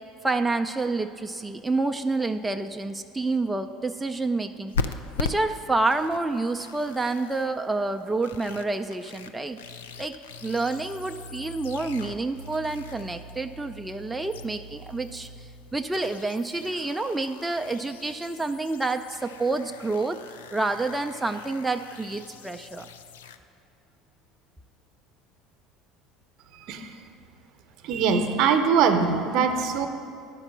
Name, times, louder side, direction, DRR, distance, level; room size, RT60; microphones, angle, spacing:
voice 1, 0.2-9.6 10.0-10.1 10.4-20.2 20.5-22.9, right 3 dB, 10° right, 6 dB, 0.4 m, -28 dB
sound 1, 4.7-7.5 7.9-23.4, left 4 dB, 85° left, 0.4 m, -39 dB
voice 2, 26.6-26.9 27.8-29.9, right 6 dB, 60° right, 7 dB, 0.8 m, -22 dB
10.5 x 5.3 x 6.1 m, 2.5 s
hypercardioid pair, 75°, 0 cm